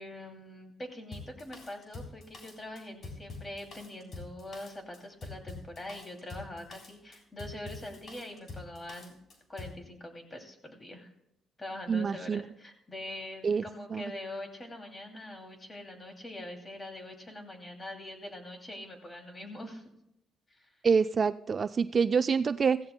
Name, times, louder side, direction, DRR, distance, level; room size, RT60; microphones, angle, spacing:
voice 1, 0.0-9.2 9.5-11.1 11.6-19.8 20.5-20.7, left 1 dB, 25° left, 4 dB, 2.6 m, -43 dB
Drum kit, 1.1-9.8, left 3 dB, 55° left, 3.4 m, -45 dB
voice 2, 11.9-12.4 13.4-13.6 13.9-14.0 20.8-22.8, right 5 dB, 40° right, 12 dB, 0.3 m, -26 dB
16.5 x 15.5 x 2.2 m, 0.81 s
cardioid pair, 90°, 0 cm